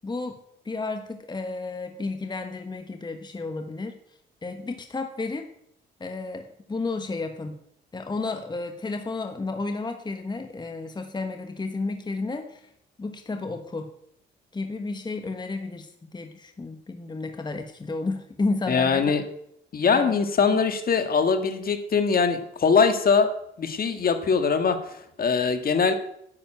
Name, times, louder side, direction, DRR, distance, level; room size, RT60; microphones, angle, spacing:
voice 1, 0.0-0.4 0.6-4.0 4.4-5.5 6.0-7.6 7.9-12.7 13.0-13.9 14.5-19.1 19.9-20.6, left 3 dB, 20° left, 6 dB, 1.2 m, -32 dB
voice 2, 18.7-19.2 19.7-23.3 23.6-25.9, left 5 dB, 50° left, 8 dB, 1.7 m, -22 dB
10.5 x 6.9 x 9.0 m, 0.73 s
cardioid pair, 90°, 20 cm